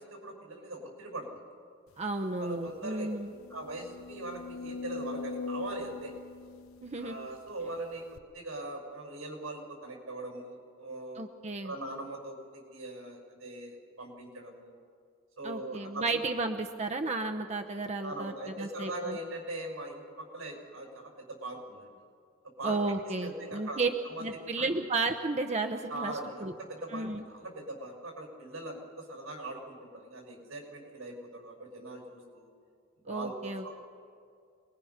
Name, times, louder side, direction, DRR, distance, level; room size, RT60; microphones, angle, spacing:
voice 1, 0.0-1.5 2.4-3.1 3.5-6.1 7.0-11.2 11.6-14.8 15.4-16.2 17.2-17.3 18.0-22.0 22.6-22.8 23.2-24.3 24.6-24.7 25.9-32.5 33.1-33.8, right 2 dB, 90° right, 1 dB, 6.0 m, -41 dB
voice 2, 2.0-3.3 6.8-7.2 11.2-11.7 15.4-19.2 22.6-23.9 24.2-26.5 26.9-27.2 33.1-33.8, right 3 dB, 35° right, 4 dB, 0.9 m, -33 dB
sound 1, 2.1-2.2 2.6-2.7 3.3-7.5 8.2-8.3, left 4 dB, 85° left, 0.8 m, -41 dB
27.5 x 21.0 x 5.8 m, 2.3 s
head